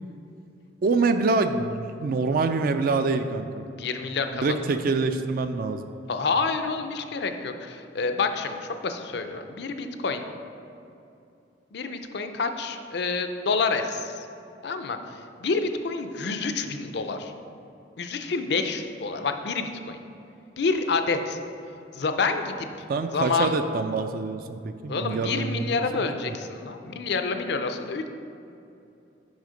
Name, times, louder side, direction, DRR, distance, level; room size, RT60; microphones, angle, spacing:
voice 1, 0.8-3.6 4.3-5.8 22.9-25.8 26.3-26.4, right 3 dB, 50° right, 8 dB, 0.3 m, -25 dB
voice 2, 3.8-4.8 6.1-10.2 11.7-14.3 14.6-17.3 18.0-20.0 20.6-21.4 21.9-22.7 23.1-23.6 24.9-28.1, left 4 dB, 60° left, 7 dB, 0.5 m, -28 dB
6.3 x 4.9 x 5.1 m, 2.7 s
head